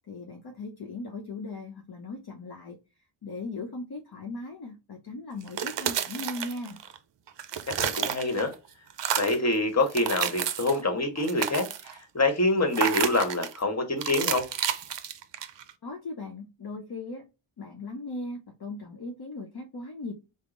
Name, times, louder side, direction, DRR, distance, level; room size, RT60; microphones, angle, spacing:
voice 1, 0.1-2.8 3.2-6.8 15.8-17.3 17.6-20.1, left 2 dB, 50° left, 0.7 m, -38 dB
sound 1, 5.4-7.0 7.3-8.5 8.9-9.5 9.9-10.8 11.2-12.0 12.7-13.6 14.0-15.7, right 9 dB, 60° right, 0.6 m, -31 dB
voice 2, 7.8-8.5 9.2-14.4, left 2 dB, 30° left, 1.1 m, -26 dB
3.6 x 2.0 x 3.6 m
wide cardioid pair, 120°, 50 cm